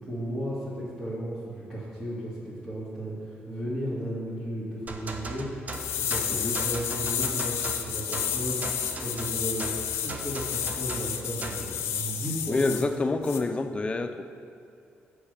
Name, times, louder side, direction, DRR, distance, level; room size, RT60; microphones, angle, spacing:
voice 1, 0.0-12.7, right 1 dB, 15° right, -11 dB, 1.9 m, -35 dB
sound 1, 4.9-11.7, right 2 dB, 35° right, 0.7 m, -38 dB
sound 2, 5.7-12.8 13.2-13.4, left 9 dB, 85° left, 0.5 m, -31 dB
voice 2, 12.5-14.2, left 3 dB, 25° left, 8 dB, 0.5 m, -27 dB
6.1 x 5.0 x 6.7 m, 2.5 s
cardioid pair, 85°, 4 cm